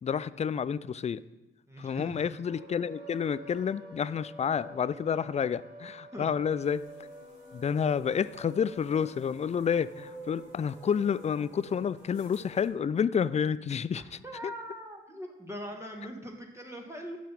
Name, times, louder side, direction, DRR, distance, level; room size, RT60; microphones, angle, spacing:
voice 1, 0.0-1.2 1.8-6.9 7.5-14.0 14.4-14.5, left 7 dB, 25° left, 17 dB, 0.3 m, -29 dB
voice 2, 1.7-2.2 6.1-6.3 13.9-17.2, equal, 10° right, 1 dB, 1.6 m, -41 dB
sound 1, 2.4-12.8, right 1 dB, 85° right, 1.5 m, -48 dB
sound 2, 6.6-12.7, left 4 dB, 70° left, 1.3 m, -60 dB
7.5 x 5.6 x 5.5 m, 1.0 s
hypercardioid pair, 40°, 30 cm